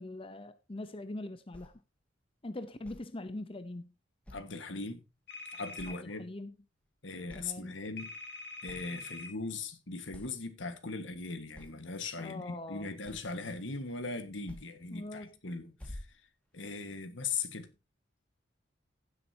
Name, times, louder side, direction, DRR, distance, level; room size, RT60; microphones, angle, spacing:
voice 1, 0.0-1.7 2.4-3.9 5.9-6.5 7.3-7.8 12.2-12.9 14.9-15.3, left 2 dB, 30° left, 0.7 m, -42 dB
sound 1, 1.5-1.7 2.8-3.1 4.2-4.6 5.1-5.2 5.8-6.1 6.5-6.9 7.3-7.6 8.3-8.4 8.7-8.9 9.7-9.8 10.1-10.4 11.5-11.8 13.0-13.4 14.5-14.7 15.1-15.4 15.8-16.7, left 1 dB, 5° left, 2.1 m, -49 dB
voice 2, 4.3-5.0 5.5-6.3 7.0-8.1 8.6-16.1 16.5-17.7, left 4 dB, 80° left, 1.6 m, -39 dB
sound 2, 5.3-5.9 8.0-9.3, left 3 dB, 60° left, 2.1 m, -44 dB
16.0 x 7.5 x 2.8 m
head